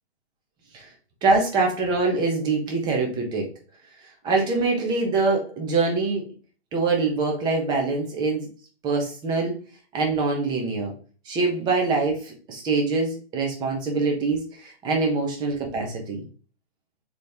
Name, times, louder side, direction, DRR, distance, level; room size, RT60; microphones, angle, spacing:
voice 1, 1.2-3.4 4.2-6.3 6.7-8.5 8.8-9.5 9.9-10.9 11.3-16.2, right 3 dB, 15° right, 2 dB, 0.9 m, -24 dB
4.4 x 3.1 x 3.4 m, 0.37 s
hypercardioid pair, 140°, 33 cm